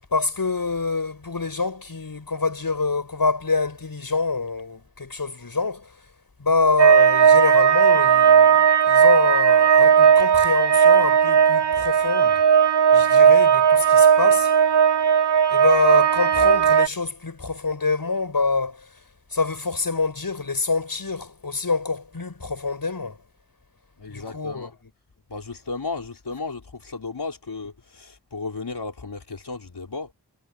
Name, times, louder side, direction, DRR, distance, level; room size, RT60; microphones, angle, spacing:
voice 1, 0.1-6.0 6.4-12.4 12.9-14.5 15.5-18.9 19.3-23.2 24.1-24.7, left 3 dB, 60° left, 6.9 m, -26 dB
sound 1, 6.8-16.9, right 7 dB, 90° right, 3.5 m, -16 dB
voice 2, 24.0-24.7 25.3-30.1, left 4 dB, 75° left, 5.5 m, -34 dB
wide cardioid pair, 50°, 39 cm